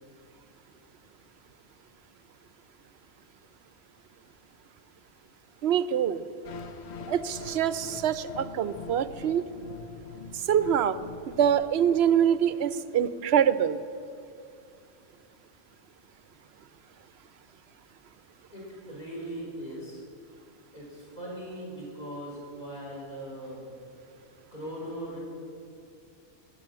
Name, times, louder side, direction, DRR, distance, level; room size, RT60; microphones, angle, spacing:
voice 1, 5.6-6.2 7.1-9.4 10.3-11.0 11.3-13.8, right 9 dB, 65° right, 14 dB, 0.9 m, -25 dB
sound 1, 6.4-12.5, left 4 dB, 65° left, 1.1 m, -43 dB
voice 2, 18.5-20.0 20.7-23.7 24.5-25.2, right 1 dB, 40° left, -6 dB, 5.0 m, -39 dB
15.0 x 10.0 x 7.3 m, 2.6 s
omnidirectional pair, 1.2 m